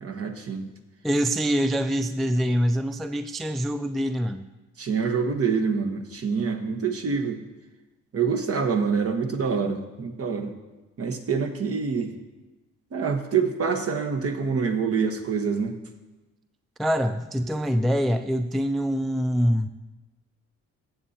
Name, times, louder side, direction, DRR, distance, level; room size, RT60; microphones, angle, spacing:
voice 1, 0.0-0.6 4.8-7.4 8.1-10.5 11.0-12.1 12.9-15.8, right 5 dB, 50° right, 4 dB, 1.2 m, -26 dB
voice 2, 1.0-4.5 16.8-19.7, equal, ahead, 9 dB, 0.3 m, -24 dB
14.5 x 7.7 x 2.8 m, 1.1 s
cardioid pair, 90°, 30 cm